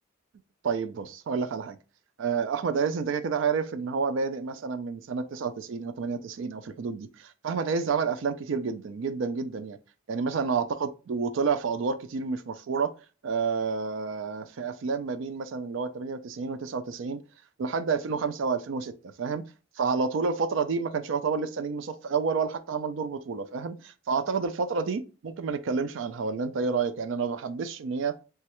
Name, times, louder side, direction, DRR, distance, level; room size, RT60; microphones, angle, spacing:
voice 1, 0.6-1.8 2.2-9.8 10.1-12.9 13.2-17.2 17.6-19.4 19.8-28.2, right 5 dB, 65° right, 0.4 m, -29 dB
3.1 x 2.3 x 2.9 m
head